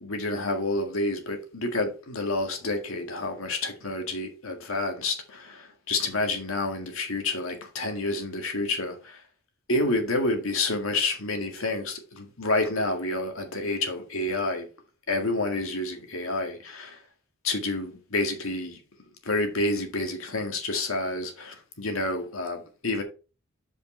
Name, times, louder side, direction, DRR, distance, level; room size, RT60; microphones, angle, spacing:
voice 1, 0.0-9.2 9.7-14.7 15.1-17.0 17.4-18.8 19.3-23.0, left 2 dB, 70° left, 1.9 m, -29 dB
7.5 x 5.1 x 4.4 m
head